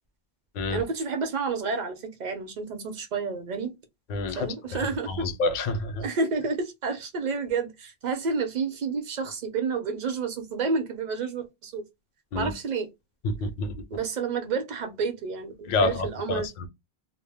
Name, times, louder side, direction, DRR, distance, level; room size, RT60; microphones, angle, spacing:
voice 1, 0.7-3.7 4.3-5.4 6.0-11.8 12.3-12.9 13.9-16.5, right 4 dB, 50° right, 0.7 m, -30 dB
voice 2, 4.1-4.5 5.1-6.0 12.3-12.5 13.2-13.8 15.7-16.7, left 2 dB, 60° left, 0.6 m, -28 dB
2.1 x 2.0 x 3.3 m
omnidirectional pair, 1.0 m